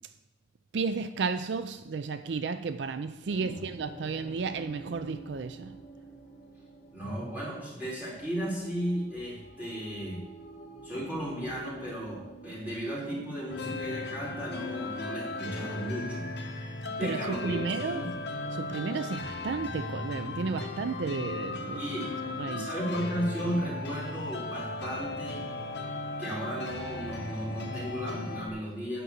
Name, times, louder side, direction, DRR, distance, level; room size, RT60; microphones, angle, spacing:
voice 1, 0.7-5.8 17.0-18.0 18.5-21.8 22.3-22.7, right 4 dB, 70° right, 0.4 m, -33 dB
sound 1, 3.3-15.9, right 2 dB, 45° left, 2.2 m, -49 dB
voice 2, 6.9-10.2 10.8-16.3 17.0-18.1 21.8-22.1 22.5-25.4 26.2-29.0, equal, 10° right, 4.2 m, -35 dB
sound 2, 13.5-28.5, left 2 dB, 65° left, 1.4 m, -36 dB
9.2 x 6.2 x 8.0 m
head